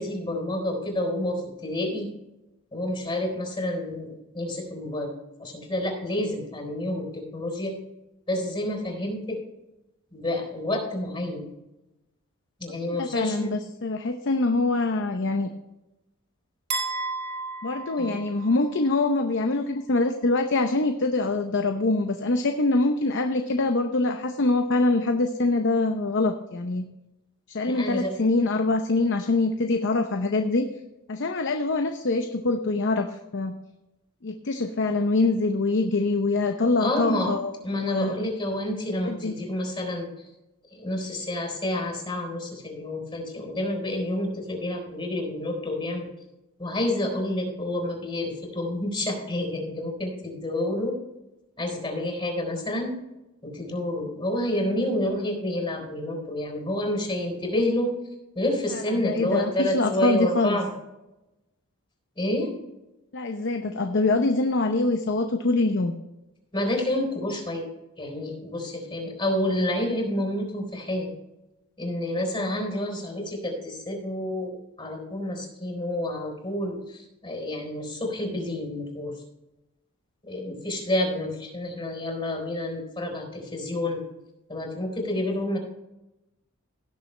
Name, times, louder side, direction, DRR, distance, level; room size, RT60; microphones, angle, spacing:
voice 1, 0.0-2.1 2.7-5.1 5.4-7.8 8.3-9.4 10.1-11.5 12.6-13.6 18.0-18.2 27.7-28.1 36.8-37.3 37.6-40.1 40.7-46.1 46.6-51.0 51.6-52.9 53.4-57.9 58.4-60.7 62.2-62.5 66.5-67.7 68.0-71.1 71.8-79.1 80.2-84.0 84.5-85.6, left 1 dB, 25° left, 2 dB, 3.9 m, -29 dB
voice 2, 12.9-15.5 17.6-26.9 27.5-30.7 31.1-33.1 33.3-33.5 34.2-38.1 39.0-39.3 58.7-60.6 63.1-65.9, left 2 dB, 55° left, 6 dB, 0.7 m, -24 dB
sound 1, 16.7-18.8, right 3 dB, 55° right, 3.2 m, -33 dB
17.5 x 7.1 x 3.3 m, 0.96 s
head